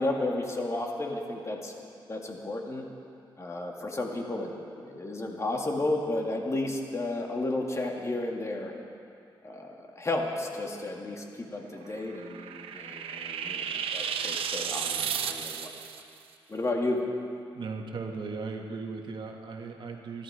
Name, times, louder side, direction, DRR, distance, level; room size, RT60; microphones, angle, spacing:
voice 1, 0.0-1.7 2.1-2.9 3.4-8.7 9.4-15.7 16.5-17.0, left 2 dB, 30° left, 1 dB, 2.1 m, -32 dB
sound 1, 11.9-16.0, right 8 dB, 90° right, 0.7 m, -33 dB
voice 2, 17.5-20.2, right 4 dB, 60° right, 3 dB, 1.6 m, -37 dB
24.0 x 12.0 x 4.9 m, 2.5 s
cardioid pair, 85°, 9 cm